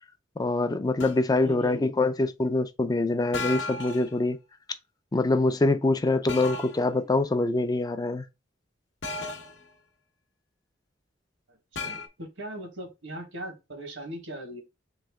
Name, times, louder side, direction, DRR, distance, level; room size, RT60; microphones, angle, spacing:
voice 1, 0.4-4.4 5.1-8.3, left 2 dB, 20° left, 0.4 m, -24 dB
sound 1, 1.0-1.3 3.3-4.1 6.3-6.8 9.0-9.6 11.8-12.1, left 3 dB, 65° left, 0.8 m, -34 dB
voice 2, 1.4-1.8 11.5-11.6 11.8-14.6, right 1 dB, 80° right, 1.6 m, -39 dB
3.5 x 3.1 x 3.5 m
head